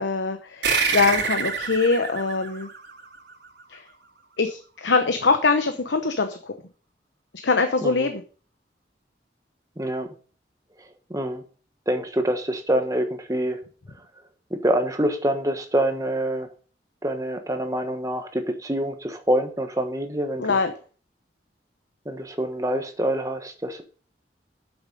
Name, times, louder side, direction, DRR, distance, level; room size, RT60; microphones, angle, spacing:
voice 1, 0.0-2.7 3.7-3.8 4.4-6.5 7.4-8.2 20.4-20.7, left 4 dB, 85° left, 7 dB, 1.0 m, -23 dB
sound 1, 0.6-3.6, right 5 dB, 80° right, 2.9 m, -27 dB
voice 2, 9.8-10.1 10.8-11.4 11.9-13.6 13.9-14.1 14.5-16.5 17.0-20.6 22.0-23.8, right 1 dB, 20° right, 6 dB, 1.2 m, -26 dB
8.8 x 7.2 x 5.4 m, 0.40 s
head